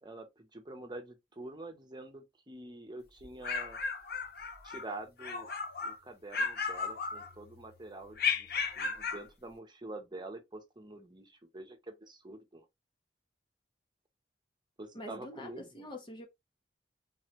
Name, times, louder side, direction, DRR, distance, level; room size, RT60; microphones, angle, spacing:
voice 1, 0.0-3.8 4.6-5.5 5.8-8.5 8.8-12.6 14.8-15.9, right 2 dB, 25° right, 1.0 m, -46 dB
sound 1, 3.2-4.9 5.2-6.0 6.3-7.6 8.2-9.3, left 5 dB, 60° left, 1.1 m, -34 dB
voice 2, 14.9-16.3, left 1 dB, 30° left, 0.9 m, -45 dB
4.1 x 3.1 x 2.9 m
head